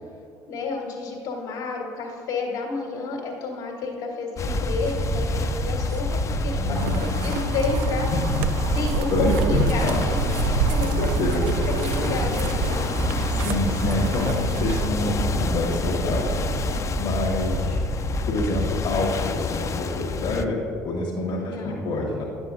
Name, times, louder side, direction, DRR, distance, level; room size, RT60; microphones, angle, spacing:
voice 1, 0.5-6.1 6.4-8.1 8.7-11.1 11.7-12.8 13.5-13.6 21.4-21.9, left 3 dB, 80° left, -2 dB, 1.7 m, -30 dB
sound 1, 4.4-20.5, left 5 dB, 35° left, 0.4 m, -29 dB
sound 2, 4.4-18.7, right 4 dB, 40° right, 0.8 m, -29 dB
voice 2, 6.6-7.3 8.1-8.7 9.1-10.0 10.8-12.1 13.3-16.3 17.0-17.8 18.3-22.2, left 2 dB, 65° left, -4 dB, 1.3 m, -27 dB
sound 3, 6.7-14.9, right 5 dB, 75° right, 0.4 m, -29 dB
9.9 x 7.8 x 2.6 m, 2.6 s
hypercardioid pair, 60°, 9 cm